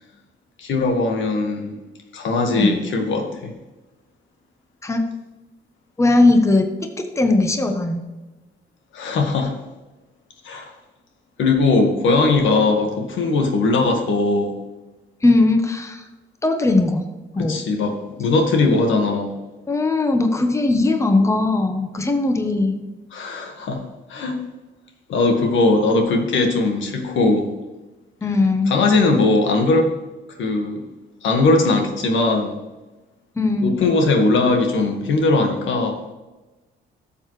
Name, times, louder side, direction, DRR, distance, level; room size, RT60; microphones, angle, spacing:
voice 1, 0.6-1.8 2.1-3.5 8.9-9.6 10.4-10.7 11.4-14.5 17.4-19.3 23.1-23.8 24.1-24.4 25.1-27.5 28.7-29.9 30.4-30.8 31.2-32.6 33.6-36.0, left 3 dB, 75° left, 4 dB, 1.6 m, -19 dB
voice 2, 6.0-6.6 7.2-8.0 15.2-16.0 16.4-17.0 17.3-17.6 19.7-22.8 28.2-28.7 33.4-33.8, left 2 dB, 15° left, 5 dB, 1.0 m, -18 dB
12.5 x 6.9 x 3.2 m, 1.1 s
cardioid pair, 90°, 20 cm